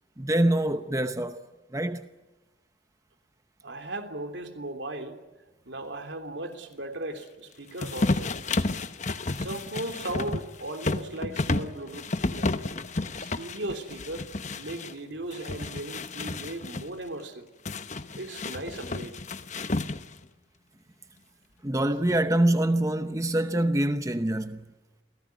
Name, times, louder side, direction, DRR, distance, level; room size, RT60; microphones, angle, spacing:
voice 1, 0.2-1.5 1.7-2.1 21.6-24.6, right 1 dB, 15° right, 0.8 m, -25 dB
voice 2, 3.6-5.2 5.7-8.3 9.4-12.6 13.2-14.3 14.6-17.5 18.1-19.1, right 2 dB, 75° right, 3.3 m, -37 dB
sound 1, 7.8-14.9 15.3-16.9 17.7-20.2, left 2 dB, 40° left, 1.0 m, -31 dB
29.0 x 18.0 x 9.3 m
head